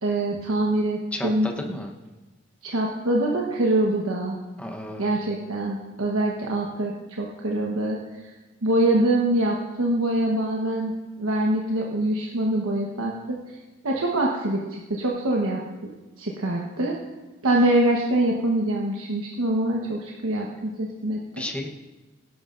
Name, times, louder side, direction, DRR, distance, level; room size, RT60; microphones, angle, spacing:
voice 1, 0.0-1.5 2.6-4.4 5.0-8.3 8.6-10.9 11.2-13.6 13.8-15.6 16.2-17.0 17.4-21.2, right 1 dB, 90° right, -2 dB, 1.2 m, -24 dB
voice 2, 1.1-1.9 4.6-5.1 21.4-21.7, left 1 dB, 5° left, 1 dB, 1.0 m, -33 dB
18.0 x 11.5 x 2.6 m, 1.2 s
head